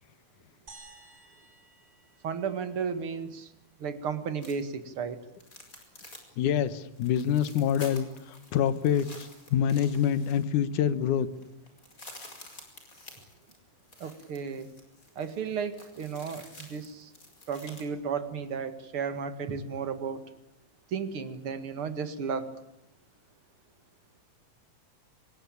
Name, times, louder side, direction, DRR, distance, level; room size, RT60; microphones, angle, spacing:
sound 1, 0.7-3.1, right 3 dB, 25° right, 5.2 m, -54 dB
voice 1, 2.2-3.5 3.8-5.2 14.0-14.7 15.2-17.1 17.5-20.2 20.9-22.5, right 6 dB, 45° right, 10 dB, 2.3 m, -34 dB
sound 2, 4.4-4.8 5.3-6.3 6.6-6.7 6.9-10.7 11.0-11.1 11.3-17.8, left 2 dB, 20° left, 5.3 m, -50 dB
voice 2, 6.4-11.3, left 9 dB, 65° left, 14 dB, 2.6 m, -26 dB
25.5 x 21.5 x 8.7 m, 0.85 s
omnidirectional pair, 4.1 m